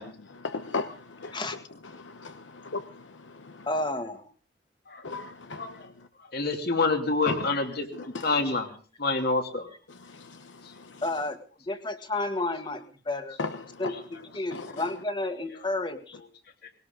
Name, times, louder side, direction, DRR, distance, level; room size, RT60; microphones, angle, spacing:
voice 1, 0.0-1.4 1.9-3.7 5.0-6.1 7.3-7.5 7.9-8.3 9.9-11.0 13.4-13.9 14.5-14.9, left 3 dB, 85° left, 1.0 m, -37 dB
voice 2, 3.7-4.3 11.0-13.4 13.8-16.2, left 2 dB, 25° left, 1.9 m, -31 dB
voice 3, 5.5-5.9 6.3-8.7 9.0-9.7, left 3 dB, 60° left, 2.9 m, -27 dB
20.5 x 18.5 x 3.8 m
head